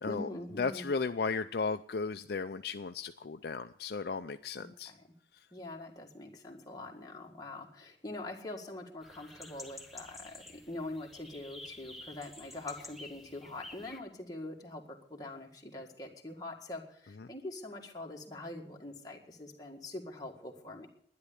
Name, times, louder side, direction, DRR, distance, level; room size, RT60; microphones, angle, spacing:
voice 1, 0.0-0.9 4.6-5.0 5.5-20.9, left 2 dB, 20° left, 0 dB, 1.8 m, -44 dB
voice 2, 0.6-4.9 17.2-17.3, left 4 dB, 55° left, 8 dB, 0.5 m, -35 dB
sound 1, 9.0-14.0, left 2 dB, ahead, 1.2 m, -50 dB
11.5 x 10.5 x 8.5 m, 0.66 s
head